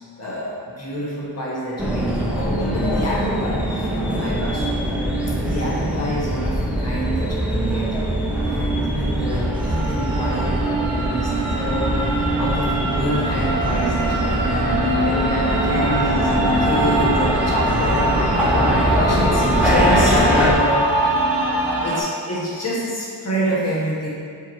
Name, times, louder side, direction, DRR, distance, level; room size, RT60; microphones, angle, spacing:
voice 1, 0.2-4.7 5.4-7.9 8.4-21.0 21.8-24.1, equal, 35° left, -6 dB, 1.4 m, -27 dB
sound 1, 1.8-20.5, equal, 5° right, 0.5 m, -23 dB
sound 2, 8.6-22.0, right 1 dB, 85° right, 1.3 m, -23 dB
6.8 x 3.2 x 4.3 m, 2.3 s
wide cardioid pair, 150°, 43 cm